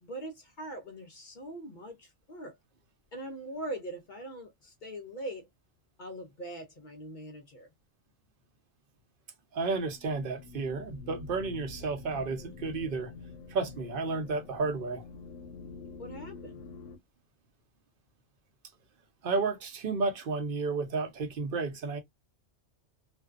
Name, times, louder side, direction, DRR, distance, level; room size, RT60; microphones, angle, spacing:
voice 1, 0.0-2.6 3.1-5.5 6.0-7.7 16.0-16.6, right 1 dB, 55° left, 0.5 m, -42 dB
voice 2, 9.5-13.1 13.5-15.0 19.2-22.0, right 4 dB, 50° right, 0.8 m, -32 dB
sound 1, 9.7-17.0, left 4 dB, 90° left, 1.0 m, -47 dB
2.5 x 2.2 x 2.3 m
omnidirectional pair, 1.3 m